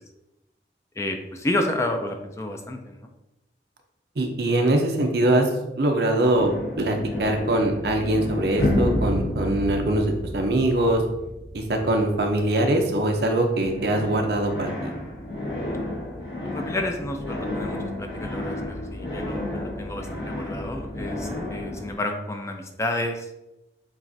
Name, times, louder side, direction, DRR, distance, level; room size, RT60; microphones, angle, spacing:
voice 1, 1.0-3.1 16.5-23.3, left 1 dB, 15° left, 4 dB, 0.3 m, -30 dB
voice 2, 4.2-11.0 11.5-14.9, right 1 dB, 65° right, 3 dB, 0.6 m, -23 dB
sound 1, 6.3-13.3 13.6-21.9, left 1 dB, 65° left, 1.3 m, -31 dB
7.2 x 2.4 x 2.6 m, 0.96 s
head